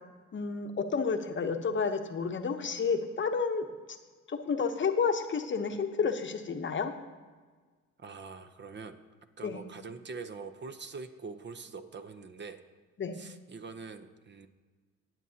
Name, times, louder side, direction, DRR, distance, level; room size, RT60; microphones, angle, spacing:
voice 1, 0.3-3.7 4.3-6.9 9.4-9.6 13.0-13.2, left 5 dB, 40° left, 7 dB, 0.8 m, -30 dB
voice 2, 8.0-9.0 9.4-12.6 13.1-14.5, right 4 dB, 35° right, 9 dB, 0.7 m, -44 dB
20.0 x 7.5 x 2.8 m, 1.4 s
cardioid pair, 90°, 30 cm